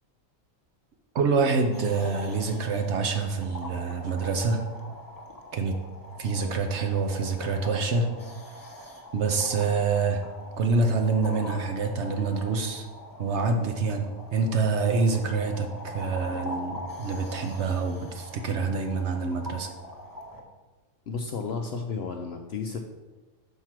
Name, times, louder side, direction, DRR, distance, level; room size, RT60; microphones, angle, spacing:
voice 1, 1.1-4.6 5.5-5.8 6.2-8.1 9.1-10.2 10.6-12.9 13.2-19.7, right 4 dB, 60° right, 5 dB, 0.9 m, -26 dB
sound 1, 1.7-20.4, left 1 dB, 20° left, 0.8 m, -42 dB
voice 2, 21.1-22.8, left 5 dB, 65° left, 4 dB, 0.7 m, -32 dB
5.7 x 4.5 x 6.0 m, 1.2 s
omnidirectional pair, 1.5 m